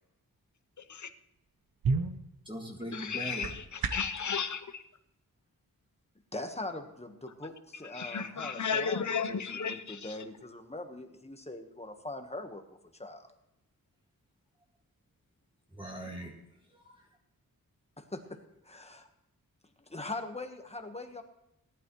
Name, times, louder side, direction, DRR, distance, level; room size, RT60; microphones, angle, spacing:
voice 1, 0.8-1.1 2.9-4.8 7.8-10.2, left 6 dB, 55° left, 11 dB, 0.8 m, -34 dB
sound 1, 1.4-4.2, right 4 dB, 70° right, 1.0 m, -34 dB
voice 2, 2.5-3.5 15.7-16.3 16.7-17.1, right 1 dB, 15° right, 0 dB, 2.0 m, -41 dB
voice 3, 6.3-13.3 18.0-18.4 18.6-19.1 19.9-21.2, left 2 dB, 15° left, 5 dB, 1.3 m, -42 dB
17.5 x 11.5 x 3.2 m, 0.86 s
wide cardioid pair, 125°, 36 cm